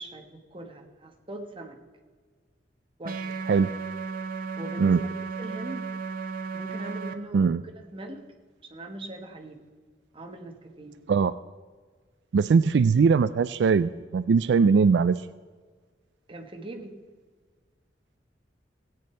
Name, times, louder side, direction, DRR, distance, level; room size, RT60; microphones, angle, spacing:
voice 1, 0.0-1.8 3.0-3.4 4.6-5.1 5.4-5.9 6.5-8.3 8.6-9.6 10.1-11.0 16.3-17.0, right 1 dB, 30° right, 3 dB, 1.4 m, -40 dB
sound 1, 3.0-7.1, right 4 dB, 55° right, 0.8 m, -34 dB
voice 2, 12.3-15.2, right 5 dB, 75° right, 15 dB, 0.3 m, -21 dB
16.5 x 8.8 x 4.5 m, 1.5 s
head